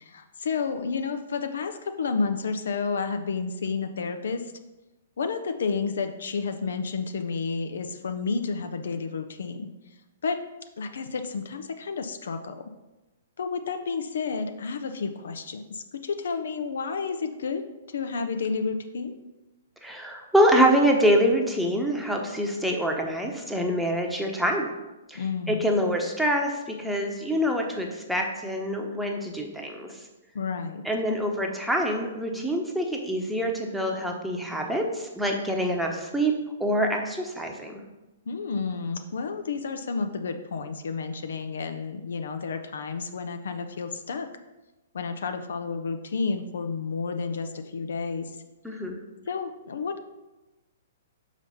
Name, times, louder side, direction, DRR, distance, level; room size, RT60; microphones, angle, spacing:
voice 1, 0.0-4.5 5.2-9.7 10.2-10.4 10.8-12.7 13.4-17.6 17.9-19.1 25.1-25.7 30.3-30.8 38.3-44.3 44.9-48.3 49.3-50.0, left 5 dB, 65° left, 8 dB, 0.6 m, -31 dB
voice 2, 19.8-24.7 25.1-29.9 30.8-36.3 36.6-37.8 48.6-49.0, equal, ahead, 1 dB, 1.0 m, -25 dB
5.6 x 5.0 x 5.5 m, 1.1 s
figure-of-eight pair, 115°, 0 cm